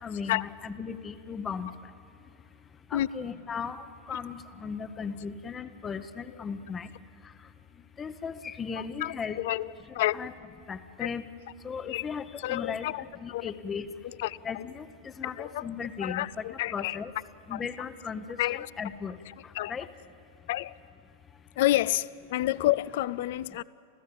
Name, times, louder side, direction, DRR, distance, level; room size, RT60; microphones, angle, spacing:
voice 1, 0.0-1.7 2.9-6.9 8.0-9.4 10.1-10.3 10.7-11.2 11.6-12.9 13.2-13.9 14.4-17.1 17.5-19.1 19.7-19.9, left 6 dB, 20° left, 0.9 m, -37 dB
voice 2, 9.0-9.7 9.9-10.2 11.0-11.1 11.8-12.1 12.4-13.0 13.3-13.5 14.2-14.6 15.2-15.6 16.0-17.0 17.5-17.6 18.4-18.7 19.5-19.7 20.5-20.8 21.6-23.6, left 15 dB, 60° left, 0.4 m, -29 dB
28.0 x 15.0 x 8.5 m
figure-of-eight pair, 95°, 0 cm